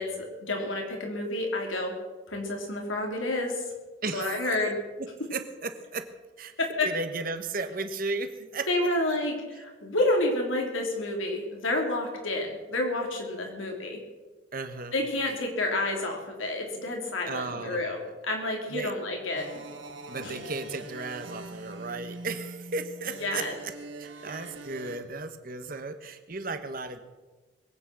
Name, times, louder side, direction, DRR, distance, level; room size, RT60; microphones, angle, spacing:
voice 1, 0.0-1.9 2.3-3.6 4.1-4.8 6.6-6.9 8.7-14.0 14.9-18.0 18.2-19.5 20.2-20.4 23.2-23.5, left 2 dB, 90° left, 1 dB, 3.5 m, -29 dB
voice 2, 4.0-4.7 5.0-6.1 6.4-6.5 6.8-8.7 9.5-9.6 14.5-15.0 17.3-17.8 18.7-18.9 20.0-23.7 24.0-27.0, right 3 dB, 45° right, 8 dB, 1.2 m, -35 dB
sound 1, 19.3-25.0, right 2 dB, 70° right, 1.6 m, -43 dB
21.5 x 9.2 x 6.2 m, 1.3 s
head